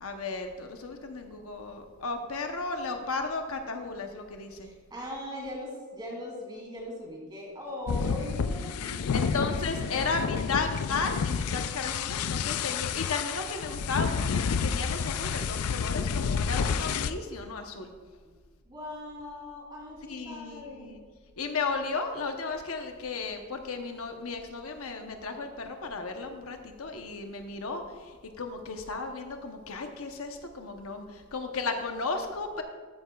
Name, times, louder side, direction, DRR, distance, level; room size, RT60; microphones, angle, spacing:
voice 1, 0.0-4.7 9.1-17.9 20.1-21.0 21.4-32.6, left 4 dB, 70° left, 5 dB, 0.9 m, -34 dB
voice 2, 4.6-10.0 18.7-21.0, left 1 dB, 20° right, -3 dB, 3.1 m, -40 dB
sound 1, 7.9-17.1, left 6 dB, 90° left, 0.4 m, -30 dB
14.0 x 9.5 x 2.3 m, 1.5 s
head